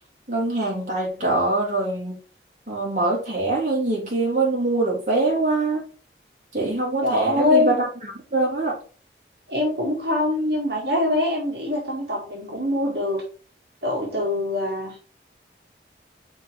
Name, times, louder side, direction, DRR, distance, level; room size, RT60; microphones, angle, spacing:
voice 1, 0.3-2.2 2.7-5.8 6.5-8.8, right 2 dB, 45° right, -4 dB, 3.0 m, -23 dB
voice 2, 7.0-7.8 9.5-13.2 13.8-15.0, left 2 dB, 70° right, -3 dB, 1.8 m, -23 dB
5.4 x 4.2 x 4.9 m, 0.39 s
head